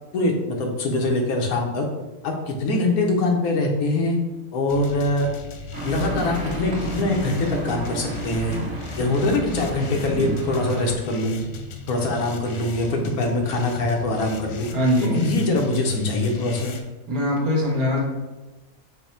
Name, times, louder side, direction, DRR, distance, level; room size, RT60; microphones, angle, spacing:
voice 1, 0.1-1.9 2.2-4.2 4.5-5.3 5.8-8.6 9.0-11.4 11.9-16.7, left 2 dB, 85° left, 2 dB, 1.2 m, -23 dB
sound 1, 4.7-16.8, left 4 dB, 65° left, 0.8 m, -38 dB
sound 2, 5.7-10.9, right 1 dB, 65° right, 1.7 m, -32 dB
voice 2, 14.7-15.4 17.1-18.0, equal, 80° right, -3 dB, 1.6 m, -22 dB
5.6 x 2.2 x 4.3 m, 1.1 s
omnidirectional pair, 1.5 m